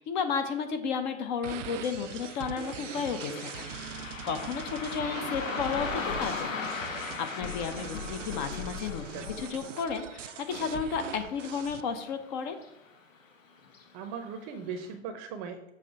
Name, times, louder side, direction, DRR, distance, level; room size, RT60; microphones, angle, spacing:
voice 1, 0.0-3.7 4.0-6.6 6.9-12.5, left 6 dB, 35° left, 8 dB, 0.6 m, -33 dB
sound 1, 1.4-11.8, right 11 dB, 75° right, 0.5 m, -42 dB
Car passing by, 1.5-12.3 12.6-12.7 13.6-13.8 14.3-14.4 14.9-15.0, left 4 dB, 85° left, 1.4 m, -39 dB
sound 2, 5.3-12.5, left 5 dB, 70° left, 1.7 m, -45 dB
voice 2, 13.9-15.7, right 6 dB, 30° right, 6 dB, 0.6 m, -39 dB
7.1 x 2.6 x 5.6 m, 0.92 s
hypercardioid pair, 110°, 38 cm